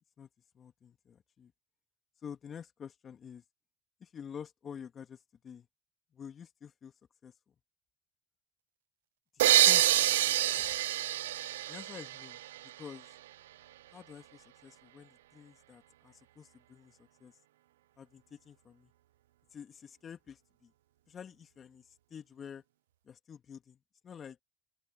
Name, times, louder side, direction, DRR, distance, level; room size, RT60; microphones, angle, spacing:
voice 1, 0.5-1.5 2.2-3.4 4.0-5.7 6.1-6.9 7.2-7.3 9.3-10.8 11.7-12.4 12.8-13.1 13.9-17.3 18.0-18.9 19.5-20.7 21.1-22.6 23.0-24.4, left 7 dB, 40° left, 3.1 m, -49 dB
sound 1, 9.4-13.0, right 14 dB, 85° right, 0.5 m, -27 dB
open air
hypercardioid pair, 70°, 0 cm